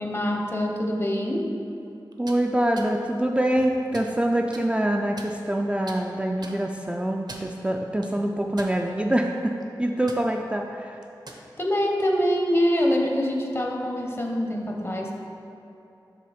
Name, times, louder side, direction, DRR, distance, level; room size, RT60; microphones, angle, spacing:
voice 1, 0.0-1.5 11.6-15.1, equal, 30° left, 1 dB, 0.8 m, -25 dB
sound 1, 2.1-2.4 2.8-2.9 3.5-4.1 4.5-4.7 5.2-5.6 5.9-6.0 6.4-6.6 7.1-7.6 8.0-8.1 8.6-9.1 9.4-9.6 10.1-10.2 11.0-11.4, right 2 dB, 55° right, 0.6 m, -42 dB
voice 2, 2.2-9.5 9.8-11.0, right 1 dB, 15° right, 1 dB, 0.3 m, -25 dB
6.7 x 3.8 x 5.0 m, 2.9 s
wide cardioid pair, 80°, 8 cm